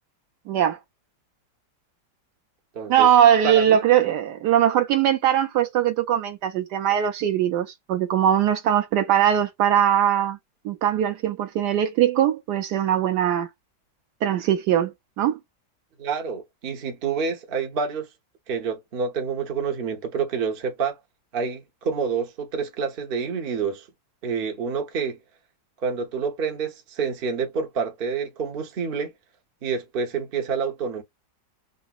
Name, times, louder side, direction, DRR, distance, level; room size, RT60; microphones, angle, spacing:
voice 1, 0.5-0.8 2.9-10.4 10.6-13.5 14.2-14.9 15.2-15.4, right 10 dB, 75° right, 1.1 m, -20 dB
voice 2, 2.7-3.1 3.4-3.8 16.0-18.1 18.5-21.0 21.3-23.9 24.2-25.2 25.8-29.1 29.6-31.0, right 5 dB, 45° right, 0.8 m, -28 dB
3.9 x 2.1 x 2.4 m
omnidirectional pair, 2.0 m